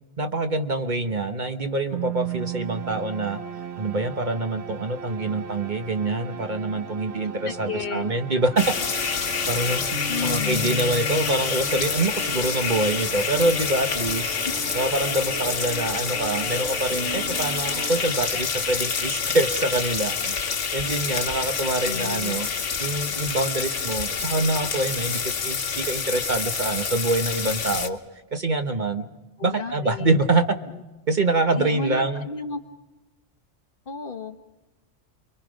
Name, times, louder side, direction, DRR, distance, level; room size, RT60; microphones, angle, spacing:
voice 1, 0.2-3.4 3.8-8.7 9.5-9.8 10.2-14.4 14.7-20.3 20.7-22.5 22.8-28.0 28.3-29.1 29.4-30.5 31.1-32.2, right 2 dB, 40° right, 7 dB, 1.1 m, -25 dB
sound 1, 1.9-18.7, right 5 dB, 60° right, 1.4 m, -36 dB
voice 2, 7.2-8.4 8.7-8.8 10.1-10.8 14.4-14.6 21.8-22.4 29.4-30.3 30.7-30.8 31.6-32.6 33.9-34.4, left 5 dB, 50° left, 7 dB, 1.3 m, -33 dB
sound 2, 8.6-27.9, left 6 dB, 80° left, 1.5 m, -27 dB
30.0 x 23.5 x 5.1 m, 1.1 s
omnidirectional pair, 1.2 m